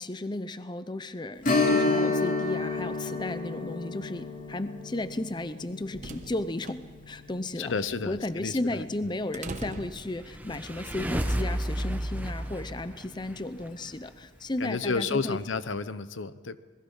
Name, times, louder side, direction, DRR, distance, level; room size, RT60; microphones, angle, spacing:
voice 1, 0.0-7.7 8.1-15.4, left 2 dB, 25° left, 12 dB, 0.6 m, -34 dB
Strum, 1.4-10.6 11.0-11.1 13.6-13.8 14.2-14.3, left 3 dB, 45° left, 2.7 m, -31 dB
sound 1, 5.6-10.7, right 2 dB, 40° right, 1.1 m, -44 dB
voice 2, 7.6-8.8 14.6-16.6, left 4 dB, 80° left, 14 dB, 0.8 m, -31 dB
sound 2, 10.1-13.7, equal, 10° right, 1.0 m, -32 dB
27.0 x 20.5 x 5.6 m, 1.4 s
head